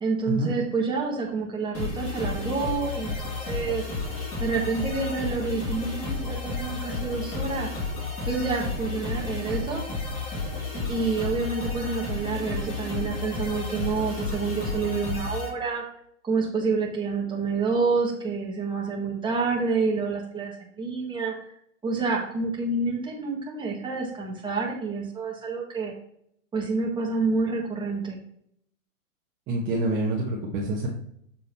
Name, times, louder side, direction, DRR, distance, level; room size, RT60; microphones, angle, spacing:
voice 1, 0.0-3.9 4.4-7.7 8.2-9.8 10.9-15.8 16.2-21.3 21.8-25.9 26.5-28.2, right 4 dB, 10° right, -2 dB, 1.7 m, -28 dB
sound 1, 1.7-15.5, left 3 dB, 35° left, 2.7 m, -32 dB
voice 2, 29.5-30.9, right 2 dB, 30° right, -3 dB, 1.3 m, -27 dB
7.2 x 3.8 x 4.4 m, 0.70 s
hypercardioid pair, 115°, 40 cm